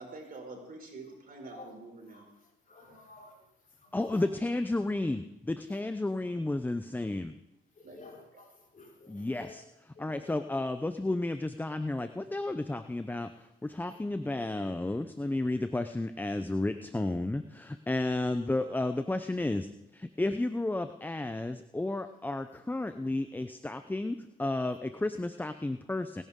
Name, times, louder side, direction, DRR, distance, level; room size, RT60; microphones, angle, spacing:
voice 1, 0.0-2.2 7.8-8.1, right 3 dB, 45° right, 1 dB, 5.2 m, -46 dB
voice 2, 1.3-1.7 2.1-3.4 3.8-4.2 7.7-9.6 9.9-10.3 13.8-14.0, left 3 dB, 45° left, -3 dB, 5.0 m, -53 dB
voice 3, 3.9-7.3 9.1-9.6 10.0-13.3 13.6-26.2, left 2 dB, 10° left, 9 dB, 0.6 m, -32 dB
27.5 x 11.0 x 3.7 m, 0.92 s
cardioid pair, 90°, 20 cm